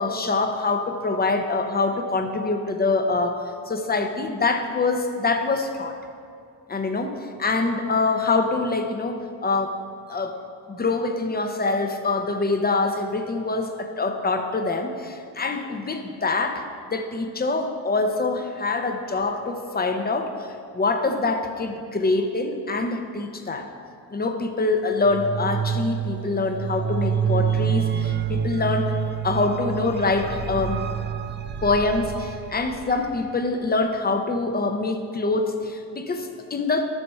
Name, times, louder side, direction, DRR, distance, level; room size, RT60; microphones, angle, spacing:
voice 1, 0.0-5.9 6.7-9.8 10.1-20.5 20.7-23.7 24.1-28.9 29.2-30.8 31.6-36.9, left 3 dB, 20° left, 6 dB, 0.8 m, -25 dB
sound 1, 25.1-33.4, right 8 dB, 30° right, 0.3 m, -27 dB
7.9 x 6.0 x 5.5 m, 2.4 s
cardioid pair, 100°, 42 cm